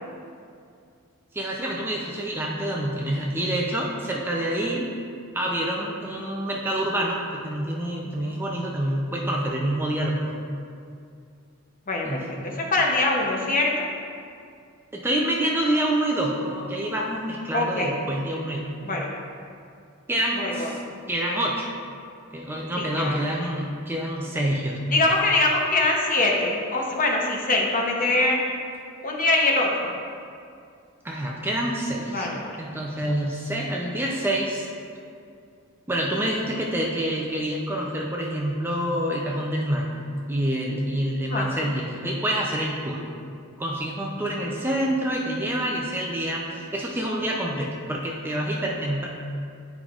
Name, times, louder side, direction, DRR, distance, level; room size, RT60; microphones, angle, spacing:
voice 1, 1.3-4.9 5.3-10.4 12.0-12.2 14.9-18.7 20.1-20.7 21.1-21.7 22.3-24.8 31.0-32.3 32.6-34.7 35.9-39.9 40.3-43.0 43.6-49.1, right 1 dB, 10° right, -2 dB, 0.4 m, -27 dB
voice 2, 11.9-13.9 17.5-17.9 18.8-19.1 20.4-20.7 22.8-23.2 24.9-28.4 29.0-29.9 32.1-32.5 41.2-41.5, left 2 dB, 40° left, -1 dB, 0.8 m, -23 dB
9.0 x 5.0 x 2.4 m, 2.4 s
head